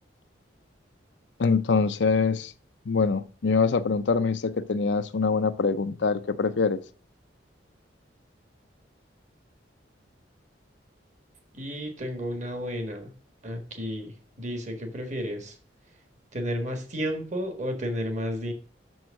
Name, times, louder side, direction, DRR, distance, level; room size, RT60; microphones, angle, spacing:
voice 1, 1.4-2.5 2.9-6.8, left 4 dB, 70° left, 0.5 m, -24 dB
voice 2, 11.5-13.1 13.4-14.1 14.4-15.6 16.3-18.5, equal, 40° right, 1.5 m, -32 dB
6.2 x 6.1 x 6.3 m
head